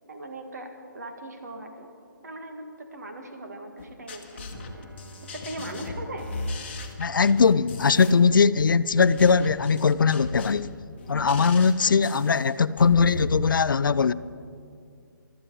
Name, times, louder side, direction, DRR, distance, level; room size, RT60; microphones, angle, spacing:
voice 1, 0.1-1.9 2.2-4.9 5.3-6.3, right 1 dB, 50° right, 1.8 m, -39 dB
sound 1, 3.8-13.4, left 2 dB, 30° left, 1.2 m, -37 dB
Bowed string instrument, 4.5-8.4, left 1 dB, 65° right, 1.3 m, -49 dB
voice 2, 7.0-10.7 11.1-14.1, left 5 dB, 70° left, 0.4 m, -20 dB
15.5 x 12.5 x 4.7 m
hypercardioid pair, 175°, 11 cm